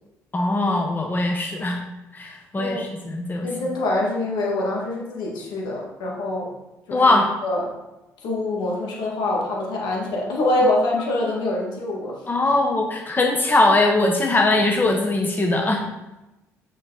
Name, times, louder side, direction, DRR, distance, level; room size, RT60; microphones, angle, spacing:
voice 1, 0.3-1.8 2.1-3.5 6.9-7.2 12.3-15.8, left 2 dB, 25° left, 1 dB, 1.2 m, -20 dB
voice 2, 3.4-6.5 6.9-7.7 8.2-12.2 12.4-12.5, left 2 dB, 65° left, -2 dB, 2.3 m, -25 dB
6.7 x 6.4 x 4.2 m, 0.99 s
hypercardioid pair, 50°, 8 cm